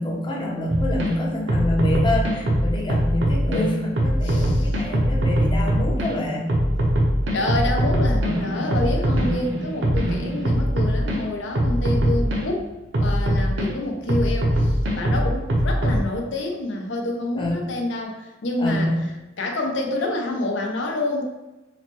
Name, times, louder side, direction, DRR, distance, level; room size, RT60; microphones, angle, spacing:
voice 1, 0.0-6.5 17.3-17.6 18.6-19.0, left 1 dB, 25° left, -2 dB, 0.6 m, -26 dB
sound 1, 0.7-1.1 1.5-3.6 4.0-6.1 6.5-11.2 11.5-12.4 12.9-13.7 14.1-16.0, equal, 70° right, 0.7 m, -21 dB
voice 2, 4.2-4.8 7.2-12.7 13.0-19.0 19.4-21.2, left 2 dB, 80° left, 1 dB, 0.6 m, -28 dB
4.0 x 2.1 x 2.9 m, 1.0 s
head